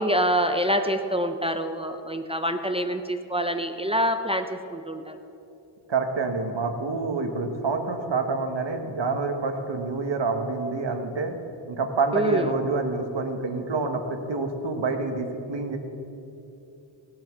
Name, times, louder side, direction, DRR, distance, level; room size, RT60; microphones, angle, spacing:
voice 1, 0.0-5.2 12.1-12.5, equal, 10° right, 6 dB, 0.5 m, -26 dB
voice 2, 5.9-11.3 11.7-15.8, right 3 dB, 60° right, 5 dB, 1.4 m, -27 dB
17.5 x 7.8 x 6.1 m, 2.8 s
wide cardioid pair, 125°, 48 cm